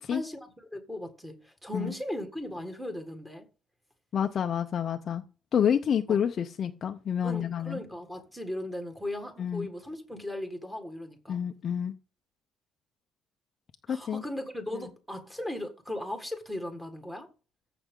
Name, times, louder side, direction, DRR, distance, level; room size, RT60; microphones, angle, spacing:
voice 1, 0.1-3.5 6.1-6.2 7.2-11.4 13.9-17.3, left 1 dB, 5° right, 1.8 m, -37 dB
voice 2, 4.1-5.2 5.5-7.8 9.4-9.7 11.3-11.9 13.9-14.2, left 8 dB, 35° left, 0.6 m, -28 dB
14.5 x 5.9 x 3.8 m
cardioid pair, 180°, 0 cm